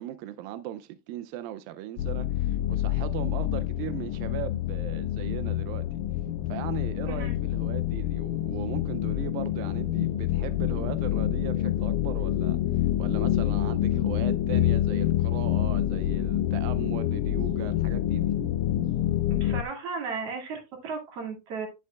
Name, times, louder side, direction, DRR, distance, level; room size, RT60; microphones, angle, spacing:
voice 1, 0.0-5.9 6.5-12.6 13.0-18.3, right 12 dB, 90° right, 2.3 m, -38 dB
sound 1, 2.0-19.6, left 12 dB, 80° left, 2.1 m, -27 dB
voice 2, 19.3-21.7, right 4 dB, 45° right, 3.2 m, -35 dB
10.5 x 7.3 x 2.3 m
omnidirectional pair, 4.0 m